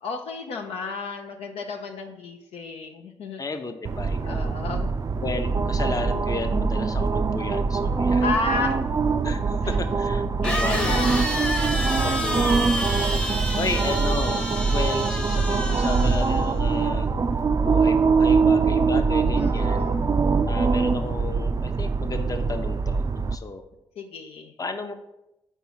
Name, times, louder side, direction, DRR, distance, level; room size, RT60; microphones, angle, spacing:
voice 1, 0.0-3.7 4.2-5.1 8.2-8.8 10.4-12.0 19.4-20.1 24.0-24.5, left 4 dB, 75° left, 3 dB, 0.6 m, -32 dB
voice 2, 3.4-4.6 5.2-8.8 9.2-11.3 12.0-13.2 13.5-14.4 14.7-17.1 17.6-19.9 20.4-23.6 24.6-24.9, left 3 dB, 35° left, 7 dB, 0.7 m, -33 dB
sound 1, 3.8-23.4, right 4 dB, 35° right, 0.4 m, -23 dB
sound 2, 8.8-8.9 10.4-16.6, equal, 10° left, 0.8 m, -30 dB
4.5 x 4.2 x 5.5 m, 0.91 s
hypercardioid pair, 40°, 10 cm